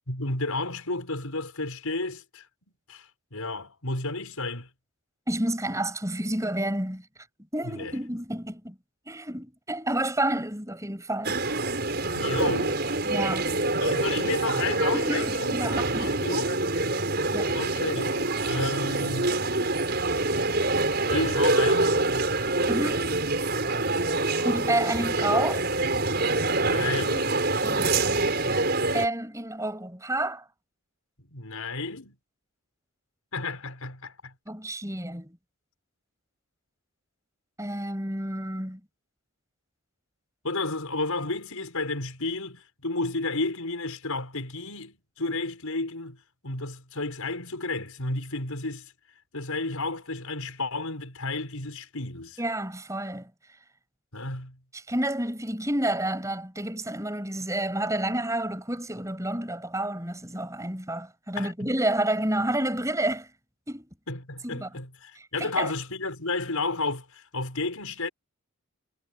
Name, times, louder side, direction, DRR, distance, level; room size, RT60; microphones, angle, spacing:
voice 1, 0.1-2.5 2.9-4.7 7.6-7.9 12.1-12.8 13.5-16.5 17.5-19.4 21.1-22.2 26.6-27.4 31.3-32.2 33.3-34.3 40.4-46.2 46.4-48.9 49.3-52.4 54.1-54.6 61.4-61.7 64.1-68.1, left 3 dB, 80° left, 5.8 m, -32 dB
voice 2, 5.3-7.0 7.5-8.7 9.1-11.4 13.0-13.5 14.9-16.2 17.3-17.6 22.7-23.2 24.4-25.7 27.6-27.9 28.9-30.5 34.5-35.4 37.6-38.8 52.4-53.3 54.9-63.3 63.7-63.9 64.4-64.7 65.4-65.7, right 1 dB, 15° right, 7.7 m, -29 dB
sound 1, 11.2-29.1, right 2 dB, 45° right, 6.1 m, -26 dB
head